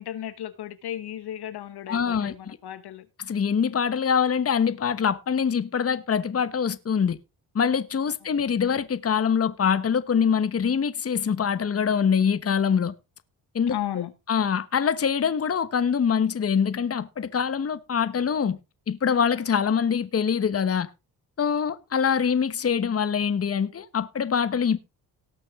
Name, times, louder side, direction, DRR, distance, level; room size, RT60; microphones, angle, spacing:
voice 1, 0.0-3.1 8.3-8.4 13.7-14.1, left 11 dB, 70° left, 1.2 m, -35 dB
voice 2, 1.9-2.6 3.2-7.2 7.5-12.9 13.5-13.8 14.3-18.6 18.9-20.9 21.4-24.8, left 7 dB, 35° left, 1.1 m, -24 dB
18.5 x 6.4 x 3.6 m
cardioid pair, 85°, 41 cm